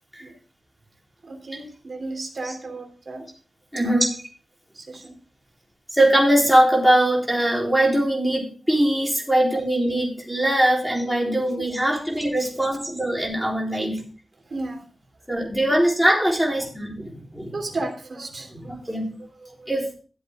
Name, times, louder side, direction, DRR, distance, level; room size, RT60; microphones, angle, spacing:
voice 1, 1.2-3.3 3.8-4.1 4.7-5.1 12.4-12.5 13.7-13.9 14.5-14.8 17.5-19.7, right 2 dB, 45° right, 2 dB, 2.9 m, -34 dB
voice 2, 3.7-4.1 5.9-14.0 15.3-17.5 18.9-19.1 19.7-20.0, right 1 dB, ahead, -2 dB, 3.9 m, -21 dB
13.0 x 7.8 x 3.6 m, 0.40 s
wide cardioid pair, 135°, 0 cm